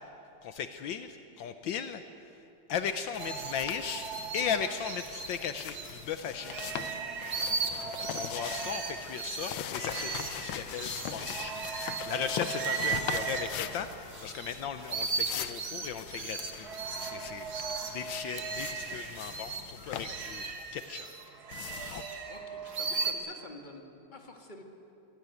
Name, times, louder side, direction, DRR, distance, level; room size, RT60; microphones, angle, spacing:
voice 1, 0.4-2.0 2.7-4.1 4.3-6.5 7.4-16.7 17.1-17.5 17.9-20.4 20.7-21.1, left 7 dB, 75° left, 9 dB, 1.5 m, -37 dB
sound 1, 3.1-20.5 21.5-22.0, left 9 dB, 90° left, 1.7 m, -41 dB
sound 2, 3.2-6.0 6.4-14.5 14.8-23.1, right 5 dB, 55° right, 2.0 m, -37 dB
voice 2, 22.3-23.8 24.1-24.6, left 2 dB, 25° left, 3 dB, 2.1 m, -48 dB
23.5 x 17.0 x 9.2 m, 2.8 s
omnidirectional pair, 2.1 m